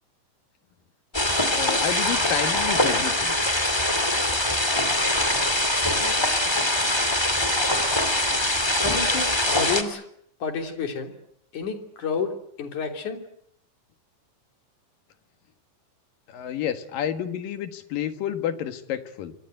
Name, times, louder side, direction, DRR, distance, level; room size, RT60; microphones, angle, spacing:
sound 1, 1.1-9.8, left 1 dB, 10° left, 2.0 m, -23 dB
voice 1, 1.5-3.4 16.3-19.3, left 10 dB, 85° left, 9 dB, 3.4 m, -30 dB
voice 2, 8.8-10.0 10.4-11.1 11.5-12.3 12.6-13.2, left 5 dB, 65° left, 5 dB, 4.6 m, -29 dB
25.5 x 25.5 x 7.9 m, 0.70 s
omnidirectional pair, 3.9 m